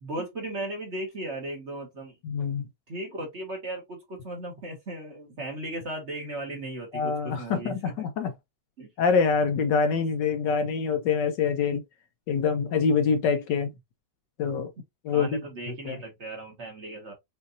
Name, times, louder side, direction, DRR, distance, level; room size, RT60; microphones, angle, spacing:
voice 1, 0.0-2.1 2.9-8.1 8.8-8.9 15.1-17.1, right 1 dB, 40° right, 1.4 m, -36 dB
voice 2, 2.2-2.6 6.9-8.3 9.0-11.8 12.3-13.7 14.4-14.7 15.0-15.4 15.8-16.0, left 5 dB, 70° left, 1.2 m, -25 dB
5.6 x 2.6 x 2.6 m
omnidirectional pair, 2.2 m